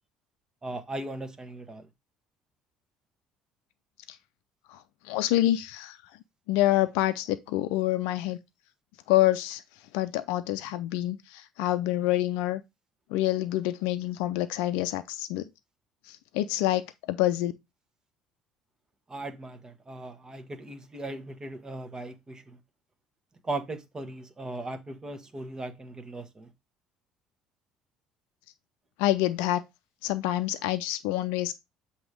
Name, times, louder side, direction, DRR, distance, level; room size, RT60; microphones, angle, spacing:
voice 1, 0.6-1.8 19.1-22.6 23.4-26.5, right 2 dB, 25° right, 1.4 m, -38 dB
voice 2, 4.7-6.0 6.5-8.4 9.1-9.6 9.9-12.6 13.1-15.5 16.0-16.8 17.1-17.5 29.0-29.6 30.0-31.5, left 15 dB, 70° left, 0.5 m, -27 dB
7.7 x 3.0 x 4.9 m
hypercardioid pair, 60°, 3 cm